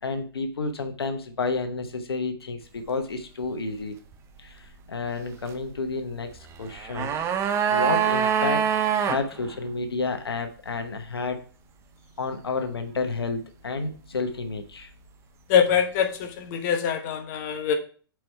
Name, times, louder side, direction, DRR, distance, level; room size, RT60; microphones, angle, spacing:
voice 1, 0.0-3.9 4.4-7.2 7.7-11.4 12.2-14.9, left 3 dB, 90° left, 6 dB, 0.9 m, -30 dB
sound 1, 6.6-9.2 9.5-9.6, right 8 dB, 20° right, 0.6 m, -24 dB
voice 2, 15.5-17.7, left 7 dB, 45° left, 6 dB, 1.0 m, -23 dB
4.7 x 4.6 x 4.4 m, 0.41 s
hypercardioid pair, 125°, 12 cm